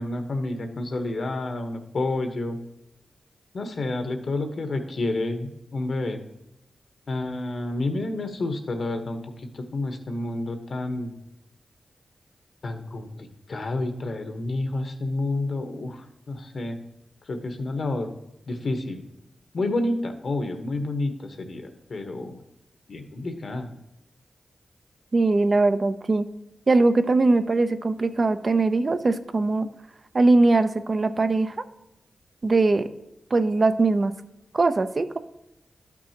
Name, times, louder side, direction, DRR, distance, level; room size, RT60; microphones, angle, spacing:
voice 1, 0.0-2.6 3.5-6.2 7.1-11.2 12.6-16.8 17.3-18.1 18.5-19.0 19.5-22.4 22.9-23.7, left 2 dB, 65° left, 6 dB, 1.1 m, -29 dB
voice 2, 25.1-26.2 26.7-29.7 30.1-31.5 32.4-32.9 33.3-34.1 34.5-35.2, right 3 dB, 50° right, 10 dB, 0.5 m, -21 dB
11.5 x 6.1 x 2.9 m, 0.87 s
cardioid pair, 55°, 0 cm